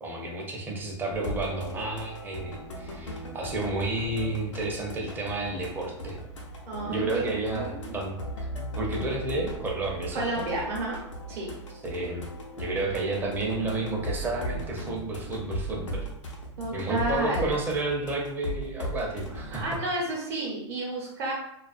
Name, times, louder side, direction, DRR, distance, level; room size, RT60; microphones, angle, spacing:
voice 1, 0.0-6.2 6.8-8.5 8.8-10.4 11.8-12.3 12.6-16.1 16.7-19.6, right 2 dB, 15° right, -1 dB, 0.5 m, -31 dB
sound 1, 1.1-19.8, equal, 90° left, 0.6 m, -37 dB
voice 2, 6.7-7.9 10.1-11.0 11.3-11.5 16.6-17.5 19.5-21.3, right 2 dB, 55° right, -5 dB, 0.7 m, -31 dB
2.4 x 2.2 x 2.4 m, 0.80 s
hypercardioid pair, 125°, 15 cm